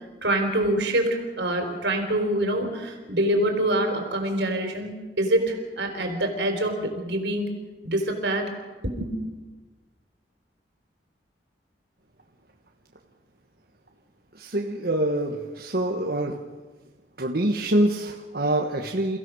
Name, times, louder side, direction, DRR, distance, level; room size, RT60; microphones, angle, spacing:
voice 1, 0.2-7.5 7.8-8.6 8.8-9.2, right 1 dB, 85° right, 4 dB, 4.0 m, -25 dB
voice 2, 14.4-16.4 17.2-19.2, right 1 dB, 60° right, 1 dB, 1.4 m, -25 dB
29.0 x 16.0 x 6.3 m, 1.3 s
head